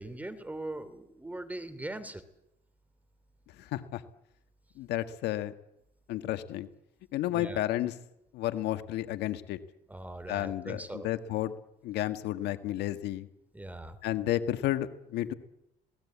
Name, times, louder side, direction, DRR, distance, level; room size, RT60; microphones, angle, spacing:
voice 1, 0.0-2.2 7.3-7.6 9.9-11.1 13.5-14.0, right 2 dB, 10° right, 11 dB, 2.9 m, -40 dB
voice 2, 3.6-4.0 4.8-5.5 6.1-6.7 7.1-7.9 8.3-9.6 10.3-11.5 11.8-13.3 14.0-15.3, left 13 dB, 80° left, 10 dB, 1.6 m, -32 dB
27.0 x 18.5 x 8.5 m, 0.83 s
cardioid pair, 110°, 17 cm